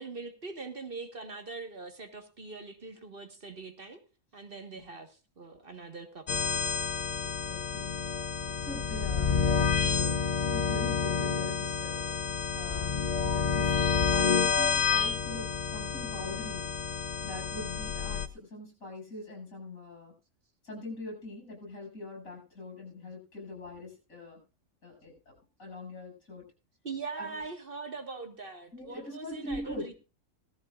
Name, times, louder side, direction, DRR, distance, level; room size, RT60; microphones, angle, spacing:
voice 1, 0.0-4.0 4.3-6.6 26.8-29.9, right 4 dB, 45° right, 6 dB, 1.7 m, -42 dB
sound 1, 6.3-18.3, left 5 dB, 40° left, 0.7 m, -29 dB
voice 2, 7.2-8.0 8.4-12.2 12.5-16.7 17.2-20.1 20.6-24.4 24.8-26.4 27.2-27.4 28.7-29.9, left 2 dB, 85° left, 1 dB, 7.5 m, -43 dB
17.5 x 14.5 x 2.5 m, 0.29 s
omnidirectional pair, 1.4 m